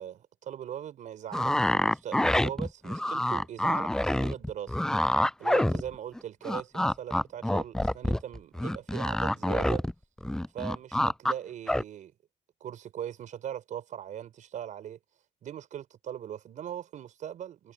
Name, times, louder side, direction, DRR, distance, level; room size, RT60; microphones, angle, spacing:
voice 1, 0.0-4.8 5.4-9.8 10.5-12.1 12.6-15.0 15.4-17.7, right 10 dB, 70° right, 4.8 m, -40 dB
sound 1, 1.3-6.2 6.5-9.9 10.2-11.3 11.7-11.8, left 1 dB, 5° left, 0.3 m, -27 dB
cardioid pair, 95°, 14 cm